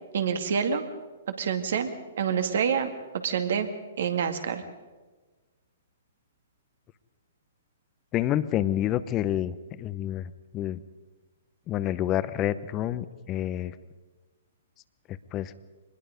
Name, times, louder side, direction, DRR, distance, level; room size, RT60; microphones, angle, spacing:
voice 1, 0.1-0.8 1.4-1.9 2.2-2.9 3.2-3.7 4.0-4.6, right 7 dB, 65° right, 7 dB, 2.2 m, -26 dB
voice 2, 8.1-10.8 11.7-13.7 15.3-15.5, left 12 dB, 30° left, 15 dB, 0.9 m, -28 dB
24.5 x 20.0 x 5.3 m, 1.3 s
hypercardioid pair, 125°, 0 cm